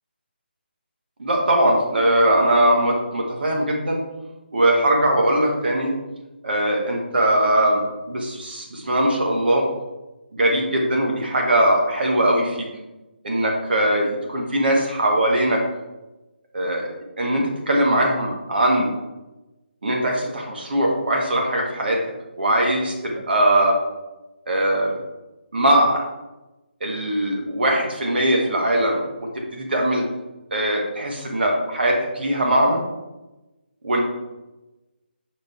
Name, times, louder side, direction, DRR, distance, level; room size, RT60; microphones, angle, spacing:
voice 1, 1.2-4.0 4.5-5.9 6.4-9.6 10.3-12.7 13.2-15.6 16.5-16.9 17.2-18.9 19.8-22.0 22.4-23.8 24.5-25.0 25.5-26.0 26.8-30.0 30.5-32.8 33.8-34.0, right 1 dB, 60° right, 0 dB, 1.7 m, -20 dB
5.9 x 5.1 x 3.6 m, 1.0 s
figure-of-eight pair, 165°, 6 cm